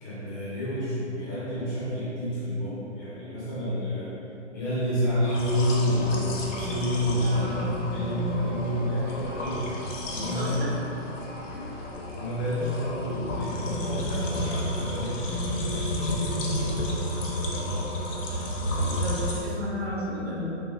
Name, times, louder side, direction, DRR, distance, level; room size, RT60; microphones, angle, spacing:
voice 1, 0.0-4.1 4.5-9.7 10.1-10.7 12.1-15.8, left 1 dB, 15° left, -10 dB, 0.6 m, -29 dB
sound 1, 5.2-19.4, equal, 85° left, 0.8 m, -31 dB
voice 2, 7.2-7.8 10.2-10.9 19.0-20.5, left 1 dB, 55° right, -8 dB, 1.1 m, -33 dB
3.4 x 3.1 x 2.4 m, 3.0 s
hypercardioid pair, 160°, 37 cm